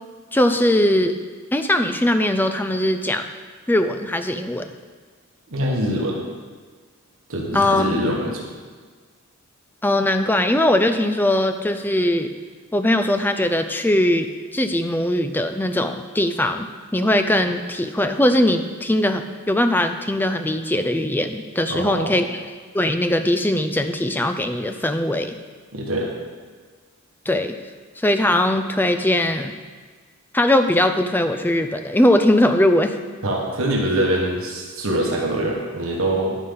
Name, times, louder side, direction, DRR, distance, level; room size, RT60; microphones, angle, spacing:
voice 1, 0.3-1.2 1.5-3.3 3.7-4.7 7.5-7.9 9.8-12.3 12.7-16.7 16.9-22.4 22.7-25.4 27.3-27.6 28.0-29.6 30.3-33.0, left 1 dB, 10° left, 8 dB, 0.4 m, -20 dB
voice 2, 5.5-6.2 7.3-8.5 21.7-22.2 25.7-26.1 33.2-36.4, right 1 dB, 70° right, -2 dB, 1.5 m, -24 dB
10.0 x 9.5 x 3.9 m, 1.5 s
head